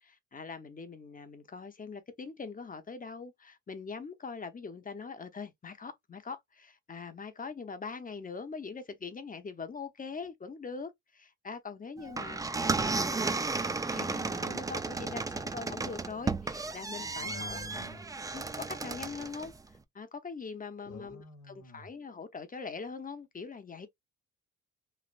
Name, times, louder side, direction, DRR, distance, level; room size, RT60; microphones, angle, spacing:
voice 1, 0.0-17.6 18.3-19.5 19.9-23.9, left 5 dB, 25° left, 0.7 m, -42 dB
sound 1, 12.0-19.6, right 3 dB, 10° right, 0.3 m, -34 dB
voice 2, 14.9-15.4 17.2-18.0 20.8-21.9, left 3 dB, 75° left, 1.0 m, -47 dB
3.2 x 2.5 x 2.4 m
supercardioid pair, 65°, 31 cm